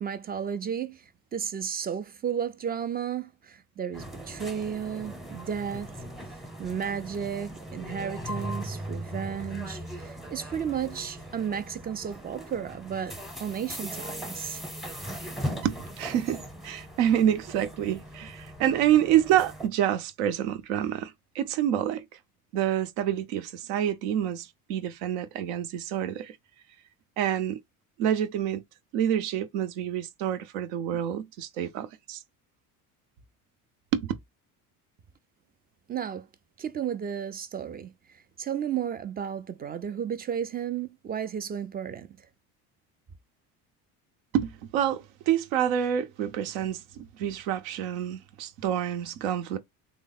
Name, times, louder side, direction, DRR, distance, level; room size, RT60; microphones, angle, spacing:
voice 1, 0.0-6.0 6.3-14.6 35.9-36.3 36.6-42.3, right 8 dB, 25° right, 0.3 m, -33 dB
sound 1, 3.9-19.7, equal, ahead, 0.8 m, -39 dB
voice 2, 15.6-22.0 22.5-26.4 27.2-27.6 28.0-28.6 28.9-32.2 33.9-34.1 44.3-49.6, right 10 dB, 75° right, 0.8 m, -27 dB
3.3 x 2.0 x 3.9 m
supercardioid pair, 80°, 44 cm